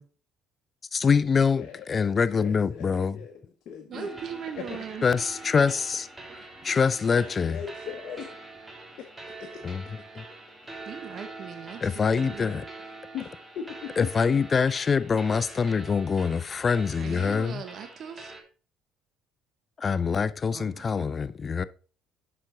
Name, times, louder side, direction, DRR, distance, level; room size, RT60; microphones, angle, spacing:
voice 1, 0.9-1.6 1.9-3.2 5.0-6.1 6.6-7.6 9.6-9.8 10.2-10.3 11.8-12.6 14.0-17.6 19.8-21.6, left 5 dB, 30° left, 0.4 m, -24 dB
voice 2, 1.6-2.1 2.4-3.4 3.7-4.1 4.6-4.8 7.4-8.3 9.0-9.1 9.4-9.6 13.1-14.1, left 8 dB, 60° left, 1.1 m, -39 dB
sound 1, 3.9-18.4, right 3 dB, 20° right, 1.7 m, -44 dB
voice 3, 3.9-5.0 10.9-12.6 17.0-18.3 20.5-20.9, right 7 dB, 50° right, 1.0 m, -39 dB
7.6 x 5.9 x 3.8 m
cardioid pair, 105°, 0 cm